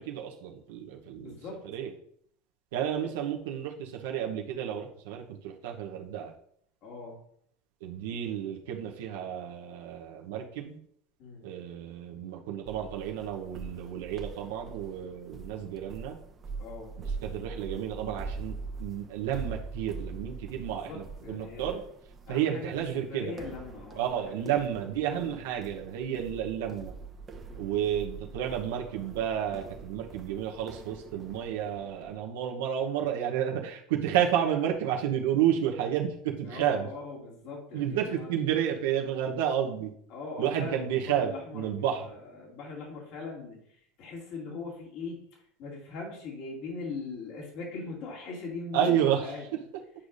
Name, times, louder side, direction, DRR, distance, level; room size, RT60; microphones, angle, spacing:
voice 1, 0.0-1.4 1.6-1.9 2.7-6.3 7.8-10.8 11.4-16.2 17.2-21.8 22.3-23.4 24.0-26.9 27.6-36.9 37.7-39.9 40.4-42.1 48.7-49.3, right 9 dB, 75° right, 0 dB, 0.9 m, -31 dB
voice 2, 1.2-1.6 6.8-7.2 11.2-11.4 16.6-16.9 20.9-21.8 22.3-22.7 23.1-24.6 25.0-25.4 26.0-26.2 27.5-27.7 36.4-38.3 40.1-49.4, left 4 dB, 60° left, -2 dB, 2.5 m, -41 dB
sound 1, 12.7-32.2, right 4 dB, 30° right, 0.9 m, -43 dB
10.0 x 4.8 x 2.6 m, 0.67 s
hypercardioid pair, 100°, 0 cm